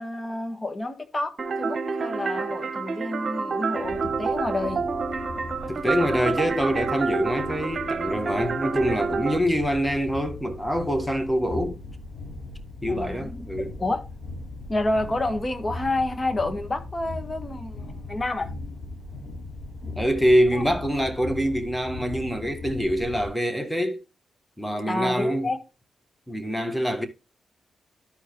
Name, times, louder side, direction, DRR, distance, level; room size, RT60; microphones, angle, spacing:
voice 1, 0.0-4.8 5.6-5.7 12.9-13.5 13.8-14.0 14.7-18.5 20.5-20.6 24.9-25.6, left 2 dB, 30° left, 1.5 m, -29 dB
sound 1, 1.4-9.4, right 4 dB, 55° right, 1.2 m, -28 dB
sound 2, 3.8-23.3, left 2 dB, 70° left, 5.3 m, -39 dB
voice 2, 5.7-11.8 12.8-13.7 19.8-24.0 24.6-25.5 26.3-27.1, equal, 5° left, 1.6 m, -25 dB
13.0 x 4.8 x 3.1 m
cardioid pair, 60°, 0 cm